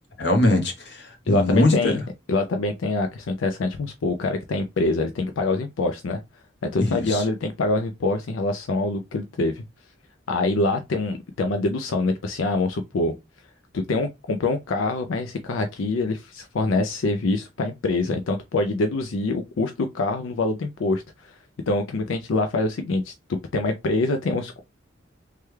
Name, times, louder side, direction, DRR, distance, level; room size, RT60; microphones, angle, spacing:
voice 1, 0.2-1.9 6.8-7.2, left 2 dB, 60° left, 1.0 m, -21 dB
voice 2, 1.3-2.0 2.3-6.2 6.6-9.6 10.3-13.1 13.7-21.4 21.7-24.6, left 2 dB, 85° left, 0.5 m, -25 dB
3.3 x 2.2 x 3.1 m
head